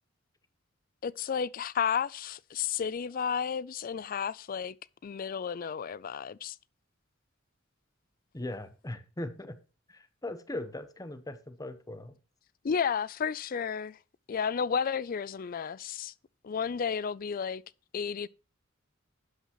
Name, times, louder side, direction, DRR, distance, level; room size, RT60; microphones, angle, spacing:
voice 1, 1.0-4.8 5.0-6.6 12.6-14.0 14.3-16.1 16.4-17.6 17.9-18.3, left 7 dB, 45° left, 0.4 m, -32 dB
voice 2, 8.3-9.6 9.9-12.2, left 1 dB, 20° left, 0.9 m, -39 dB
11.5 x 8.4 x 3.0 m
head